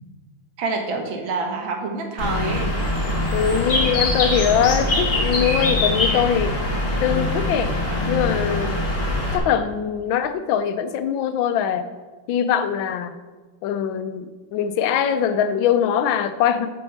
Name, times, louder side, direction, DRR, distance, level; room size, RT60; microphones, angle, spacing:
voice 1, 0.6-2.7, right 3 dB, 85° right, 3 dB, 2.1 m, -27 dB
Bird, 2.2-9.4, left 2 dB, 50° left, 2.2 m, -23 dB
voice 2, 3.3-6.6 7.0-7.7 8.1-8.8 9.3-11.9 12.3-13.1 13.6-16.7, left 8 dB, 80° left, 11 dB, 1.4 m, -22 dB
9.3 x 5.3 x 6.4 m, 1.4 s
omnidirectional pair, 2.1 m